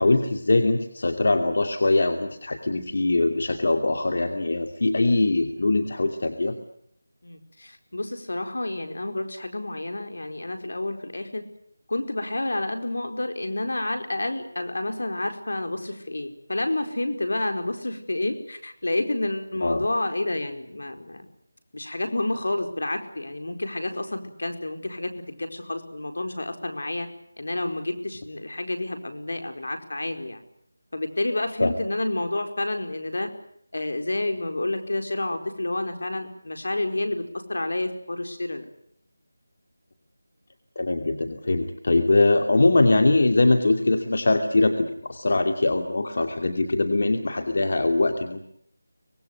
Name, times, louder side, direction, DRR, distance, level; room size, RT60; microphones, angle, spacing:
voice 1, 0.0-6.5 19.6-19.8 31.6-31.7 40.8-48.4, left 2 dB, 55° left, 5 dB, 2.6 m, -22 dB
voice 2, 7.2-11.4 11.9-21.3 21.7-27.1 27.4-30.4 30.9-33.3 33.7-38.7, left 2 dB, 75° left, 6 dB, 4.8 m, -29 dB
25.0 x 19.5 x 9.6 m, 0.69 s
figure-of-eight pair, 170°, 0 cm